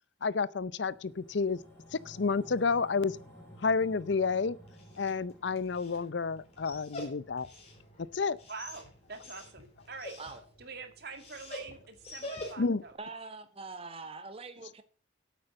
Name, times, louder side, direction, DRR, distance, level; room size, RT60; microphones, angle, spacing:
voice 1, 0.2-1.6 1.9-3.2 3.6-4.6 5.0-7.5 8.1-8.4 12.6-12.8, left 4 dB, 65° left, 0.5 m, -30 dB
sound 1, 0.8-11.4 11.7-11.8, equal, 10° left, 4.7 m, -56 dB
Dog, 4.6-12.9, left 1 dB, 35° left, 3.6 m, -47 dB
voice 2, 8.5-10.1 10.6-13.0, right 4 dB, 55° right, 2.3 m, -45 dB
voice 3, 13.0-14.8, right 3 dB, 30° right, 1.2 m, -43 dB
8.8 x 8.5 x 7.8 m
head